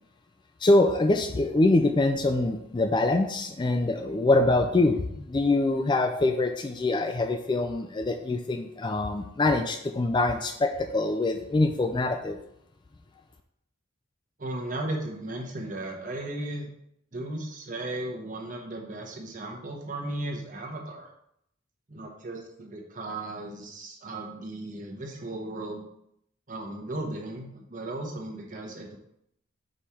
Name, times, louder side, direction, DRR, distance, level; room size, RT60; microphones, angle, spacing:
voice 1, 0.6-12.4, left 2 dB, 20° left, 6 dB, 0.3 m, -24 dB
voice 2, 14.4-16.7 17.1-21.1 21.9-25.9 26.5-29.0, right 1 dB, 40° right, 0 dB, 1.1 m, -36 dB
5.2 x 4.8 x 4.4 m, 0.76 s
head